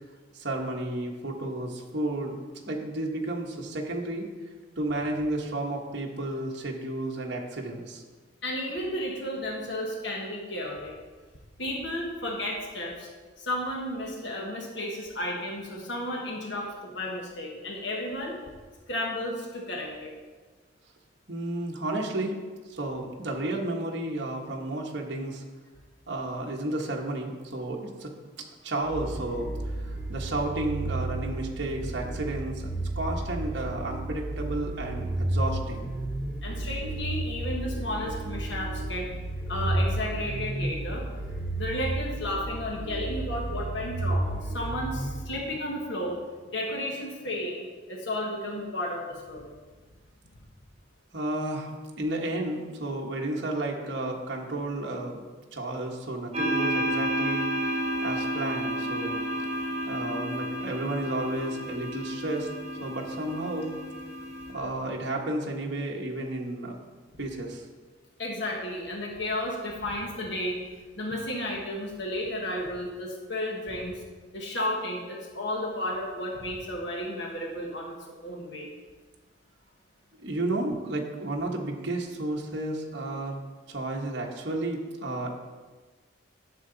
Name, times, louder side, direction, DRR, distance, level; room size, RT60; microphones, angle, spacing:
voice 1, 0.3-2.3 2.7-4.3 4.8-8.0 21.3-22.3 22.7-25.4 26.1-28.1 28.6-35.9 51.1-51.7 52.0-55.2 55.5-57.5 58.0-59.3 59.9-62.5 62.8-63.7 64.5-66.8 67.2-67.6 80.2-83.4 83.7-85.3, right 2 dB, 60° right, -1 dB, 1.2 m, -32 dB
voice 2, 8.4-10.9 11.6-13.1 13.4-18.3 18.9-20.1 36.4-39.2 39.5-41.0 41.5-46.2 46.5-49.5 68.2-70.6 71.0-74.0 74.3-78.0 78.2-78.7, left 1 dB, 65° left, -1 dB, 1.4 m, -33 dB
sound 1, 28.9-45.7, right 1 dB, 10° right, 0.9 m, -32 dB
sound 2, 56.3-64.5, equal, 30° right, 1.5 m, -31 dB
11.0 x 6.7 x 4.0 m, 1.4 s
head